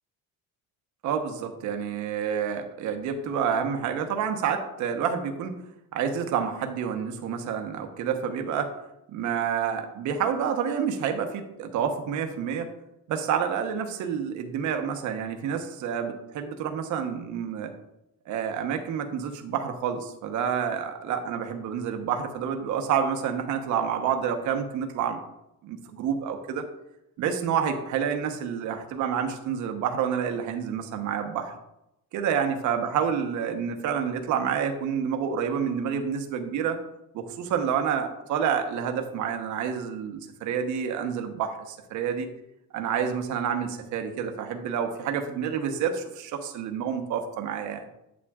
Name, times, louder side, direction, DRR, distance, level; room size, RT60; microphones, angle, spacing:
voice 1, 1.0-5.6 5.9-8.7 9.1-12.7 13.1-17.7 18.3-25.2 25.6-26.6 27.2-31.5 32.1-36.8 37.1-42.3 42.7-47.9, right 7 dB, 55° right, 6 dB, 1.0 m, -28 dB
8.6 x 8.4 x 2.4 m, 0.86 s
cardioid pair, 170°, 34 cm